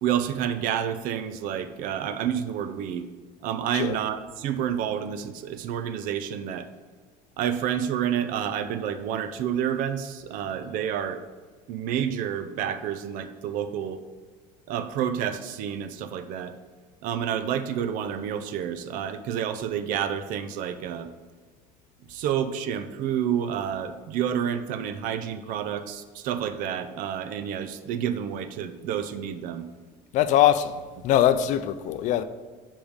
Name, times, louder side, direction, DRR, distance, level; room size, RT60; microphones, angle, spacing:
voice 1, 0.0-3.0 3.4-6.7 7.4-11.2 11.7-14.0 14.7-16.5 17.0-21.1 22.1-29.7, right 9 dB, 60° right, 0.6 m, -29 dB
voice 2, 30.1-32.2, left 11 dB, 50° left, 0.4 m, -22 dB
5.2 x 5.0 x 5.2 m
cardioid pair, 140°, 16 cm